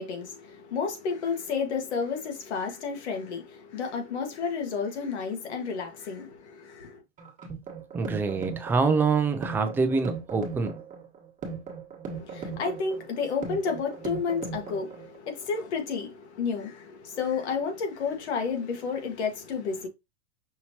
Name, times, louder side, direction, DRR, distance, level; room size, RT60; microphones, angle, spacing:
voice 1, 0.0-7.0 12.1-19.9, left 5 dB, 85° left, 1.7 m, -31 dB
sound 1, 7.2-15.2, right 5 dB, 25° right, 1.3 m, -38 dB
voice 2, 7.9-10.7, right 4 dB, 5° right, 0.4 m, -25 dB
5.8 x 2.9 x 2.8 m
supercardioid pair, 145°, 33 cm